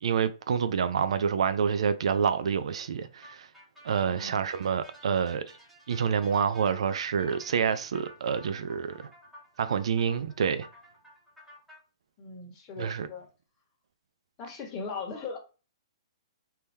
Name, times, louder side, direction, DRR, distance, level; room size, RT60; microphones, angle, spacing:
voice 1, 0.0-3.5 3.8-5.4 5.9-9.1 9.6-10.7 12.8-13.1, right 7 dB, 70° right, 0.4 m, -27 dB
sound 1, 3.2-11.8, equal, 5° right, 1.3 m, -54 dB
voice 2, 4.1-4.5 12.2-13.3 14.4-15.4, left 4 dB, 25° left, 1.3 m, -39 dB
3.6 x 2.8 x 3.2 m
hypercardioid pair, 145°, 3 cm